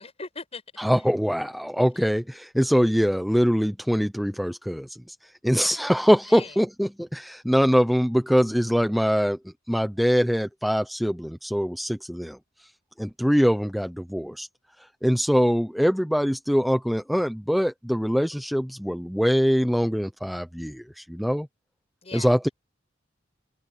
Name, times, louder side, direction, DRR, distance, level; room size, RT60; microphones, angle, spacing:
voice 1, 0.0-0.6 6.3-6.5 22.0-22.3, left 3 dB, 30° left, 7.4 m, -39 dB
voice 2, 0.8-9.4 9.7-12.4 13.0-14.5 15.0-21.5 22.1-22.5, equal, ahead, 0.7 m, -23 dB
head